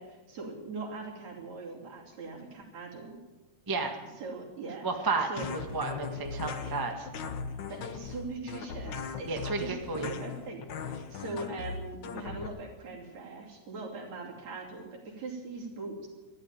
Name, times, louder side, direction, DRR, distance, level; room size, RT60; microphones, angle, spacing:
voice 1, 0.0-3.2 4.2-4.9 5.3-5.5 6.6-6.9 7.7-16.1, right 3 dB, 60° right, -1 dB, 4.2 m, -41 dB
voice 2, 4.8-7.1 9.2-10.1, right 4 dB, 20° right, 3 dB, 0.5 m, -32 dB
sound 1, 5.4-12.5, left 6 dB, 85° left, 1.0 m, -38 dB
14.0 x 11.5 x 8.9 m, 1.2 s
omnidirectional pair, 3.5 m